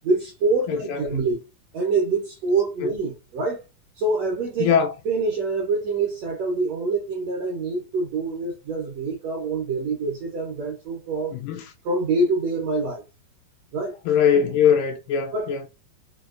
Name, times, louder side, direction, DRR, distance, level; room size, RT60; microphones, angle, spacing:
voice 1, 0.0-1.4 1.7-3.6 4.0-4.7 5.0-11.4 11.8-13.0 13.7-14.0 15.3-15.7, right 3 dB, 75° right, 1.5 m, -25 dB
voice 2, 0.7-1.0 2.8-2.9 4.6-4.9 11.3-11.7 14.1-15.6, left 7 dB, 80° left, 2.0 m, -21 dB
6.2 x 2.3 x 2.4 m
omnidirectional pair, 4.1 m